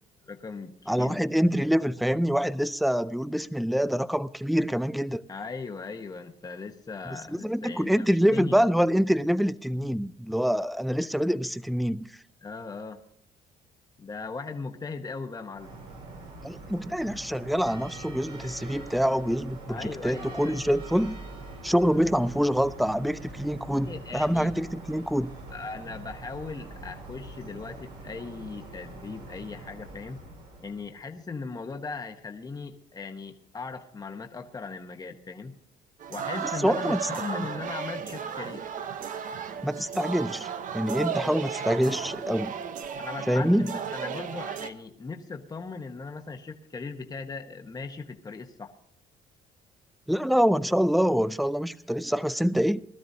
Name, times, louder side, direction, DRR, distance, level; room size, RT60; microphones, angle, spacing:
voice 1, 0.2-1.3 5.3-8.7 12.4-13.0 14.0-15.8 19.7-20.6 23.3-24.5 25.5-30.2 30.6-35.5 36.1-38.7 43.0-48.7, left 4 dB, 20° left, 1.1 m, -38 dB
voice 2, 0.9-5.2 7.1-12.1 16.4-21.2 21.6-25.3 36.4-37.1 37.4-37.5 39.6-42.5 43.3-43.7 50.1-52.8, equal, ahead, 0.4 m, -26 dB
sound 1, 15.5-31.0, right 2 dB, 80° right, 4.6 m, -43 dB
sound 2, 36.0-44.7, right 7 dB, 50° right, 0.9 m, -34 dB
20.5 x 12.5 x 2.8 m
cardioid pair, 110°, 17 cm